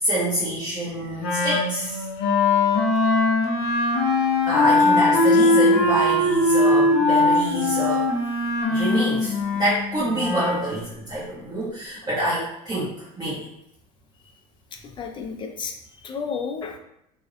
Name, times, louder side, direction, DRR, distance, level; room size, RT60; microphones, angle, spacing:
voice 1, 0.0-2.0 4.5-8.1 8.7-13.4, right 1 dB, 20° right, -9 dB, 0.8 m, -26 dB
Wind instrument woodwind instrument, 1.2-10.7, left 2 dB, 60° left, 0.7 m, -20 dB
voice 2, 14.8-16.8, left 5 dB, 30° left, 3 dB, 0.4 m, -33 dB
2.5 x 2.0 x 2.4 m, 0.78 s
supercardioid pair, 105°, 18 cm